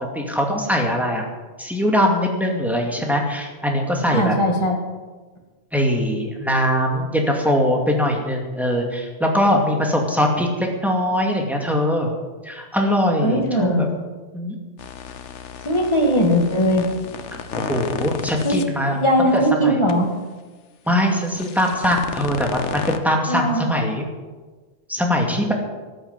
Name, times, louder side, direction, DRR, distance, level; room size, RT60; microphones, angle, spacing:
voice 1, 0.1-1.2 1.6-4.4 5.7-12.1 12.4-13.9 14.3-14.6 17.5-19.8 20.9-24.1 24.9-25.5, equal, ahead, 0 dB, 2.3 m, -21 dB
voice 2, 4.1-4.8 13.2-13.8 15.6-16.9 18.4-18.6 18.9-20.1 23.3-23.7, equal, 25° left, 1 dB, 2.4 m, -19 dB
sound 1, 14.8-18.6 19.3-19.4 19.9-20.0 21.2-23.0, left 6 dB, 80° left, 1.2 m, -32 dB
13.5 x 9.1 x 7.5 m, 1.3 s
omnidirectional pair, 1.2 m